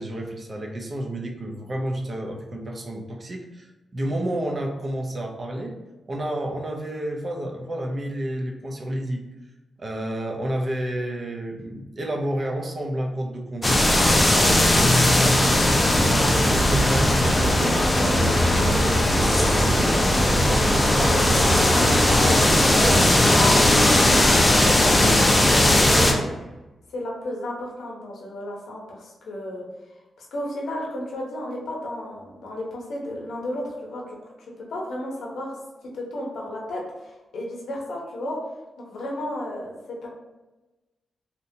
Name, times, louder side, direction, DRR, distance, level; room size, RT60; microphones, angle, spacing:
voice 1, 0.0-3.7 3.9-5.8 6.1-9.2 9.8-14.0 14.3-21.3 21.7-22.2 22.7-23.0, right 1 dB, 40° right, 1 dB, 0.5 m, -30 dB
sound 1, 13.6-26.1, left 1 dB, 20° left, 0.4 m, -18 dB
voice 2, 22.1-22.6 23.4-23.6 24.0-25.6 25.9-26.3 26.9-29.7 30.2-35.6 35.9-38.4 38.9-39.7 40.0-40.1, left 1 dB, 85° left, -2 dB, 0.7 m, -33 dB
2.8 x 2.2 x 2.7 m, 1.1 s
cardioid pair, 80°, 0 cm